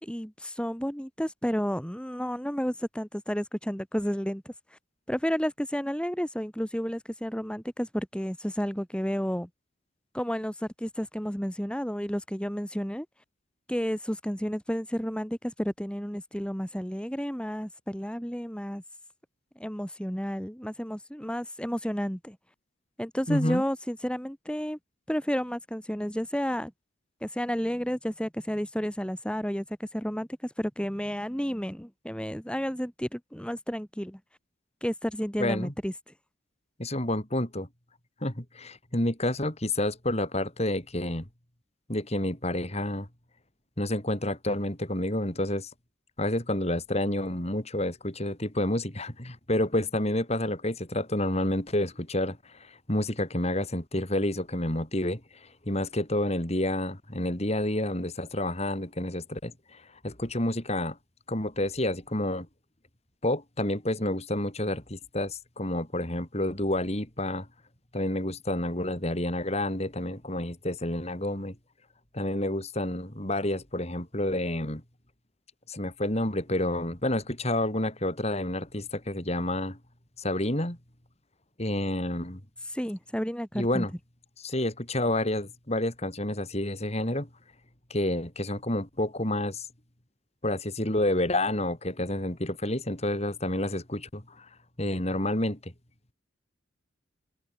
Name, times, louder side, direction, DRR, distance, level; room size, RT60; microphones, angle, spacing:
voice 1, 0.0-4.5 5.1-9.5 10.1-13.1 13.7-18.8 19.6-22.4 23.0-24.8 25.1-26.7 27.2-34.2 34.8-35.9 82.7-83.9, equal, 5° left, 4.6 m, -31 dB
voice 2, 23.3-23.6 35.4-35.7 36.8-37.7 38.2-41.3 41.9-43.1 43.8-45.7 46.2-61.0 61.3-62.5 63.2-67.5 67.9-71.6 72.1-74.8 75.7-79.8 80.2-80.8 81.6-82.4 83.5-83.9 84.4-87.3 87.9-89.7 90.4-94.5 94.8-95.7, left 1 dB, 35° left, 4.0 m, -29 dB
head